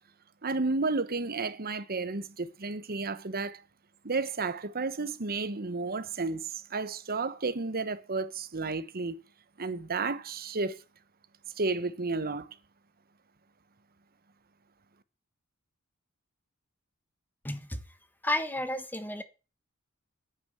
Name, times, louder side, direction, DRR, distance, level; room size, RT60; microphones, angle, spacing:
voice 1, 0.4-3.6 4.0-9.2 9.6-10.8 11.6-12.5, right 3 dB, 45° right, 1.1 m, -32 dB
voice 2, 17.4-17.8 18.2-19.2, left 1 dB, 10° left, 1.3 m, -32 dB
9.6 x 9.1 x 7.8 m
head